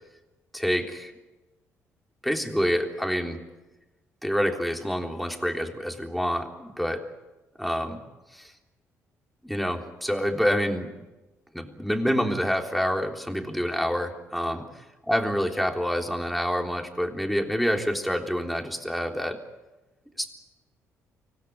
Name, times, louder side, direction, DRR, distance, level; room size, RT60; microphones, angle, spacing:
voice 1, 0.5-1.1 2.2-3.4 4.2-7.0 7.6-8.0 8.3-8.4 9.4-10.9 11.5-14.6 15.1-19.4 20.2-20.3, equal, ahead, 3 dB, 3.6 m, -27 dB
25.0 x 17.5 x 9.6 m, 1.1 s
supercardioid pair, 60°, 6 cm